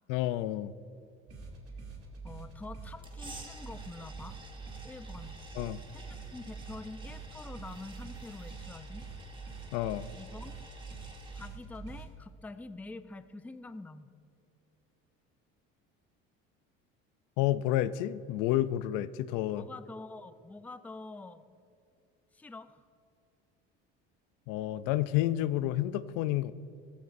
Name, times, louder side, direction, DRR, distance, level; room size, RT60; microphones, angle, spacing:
voice 1, 0.1-0.7 5.6-5.8 9.7-10.1 17.4-19.6 24.5-26.5, left 14 dB, 80° left, 16 dB, 0.5 m, -30 dB
sound 1, 1.3-12.1, right 4 dB, 50° right, 2.4 m, -45 dB
voice 2, 2.2-4.4 4.8-5.4 5.9-9.1 10.1-10.6 11.3-14.1 19.5-21.4 22.3-22.8, left 2 dB, 5° left, 11 dB, 0.4 m, -46 dB
sound 2, 3.0-11.5, right 2 dB, 15° right, 1.5 m, -52 dB
14.5 x 13.5 x 2.6 m, 2.6 s
supercardioid pair, 95°, 31 cm